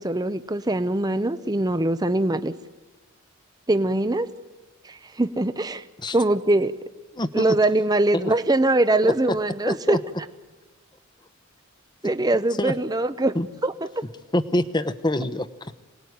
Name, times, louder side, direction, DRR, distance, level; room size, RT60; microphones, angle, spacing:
voice 1, 0.0-2.5 3.7-4.3 4.8-5.8 6.1-6.7 7.3-10.0 12.0-13.3 13.6-13.7, right 2 dB, 20° right, 11 dB, 0.7 m, -22 dB
voice 2, 7.2-7.6 8.1-8.3 9.0-9.1 9.7-10.0 12.6-12.7 13.3-13.5 14.3-15.8, left 1 dB, 20° left, 13 dB, 1.0 m, -25 dB
26.5 x 19.5 x 9.5 m, 1.3 s
head